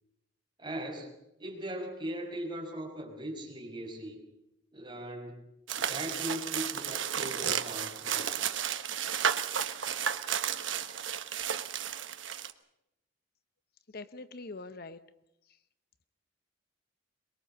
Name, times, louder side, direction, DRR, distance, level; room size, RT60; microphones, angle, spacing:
voice 1, 0.6-1.1 1.4-4.2 4.7-5.4 5.7-8.3, right 1 dB, 25° right, 0 dB, 5.7 m, -39 dB
sound 1, 5.7-12.5, right 8 dB, 75° right, 1.2 m, -33 dB
voice 2, 13.9-15.0, left 3 dB, 50° left, 12 dB, 0.8 m, -43 dB
23.0 x 22.0 x 6.7 m, 0.85 s
head